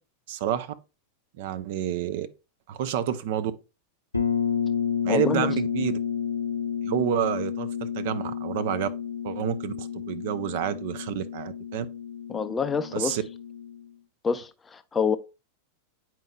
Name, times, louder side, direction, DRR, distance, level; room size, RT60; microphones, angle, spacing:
voice 1, 0.3-0.7 1.4-2.3 2.7-3.5 5.0-6.0 6.8-8.9 9.2-11.9 12.9-13.2, right 10 dB, 50° right, 0.6 m, -29 dB
sound 1, 4.1-13.8, left 7 dB, 85° left, 0.7 m, -31 dB
voice 2, 5.1-5.5 12.3-13.2 14.2-15.2, left 6 dB, 15° left, 0.4 m, -27 dB
9.1 x 4.5 x 2.3 m
figure-of-eight pair, 90°, 0 cm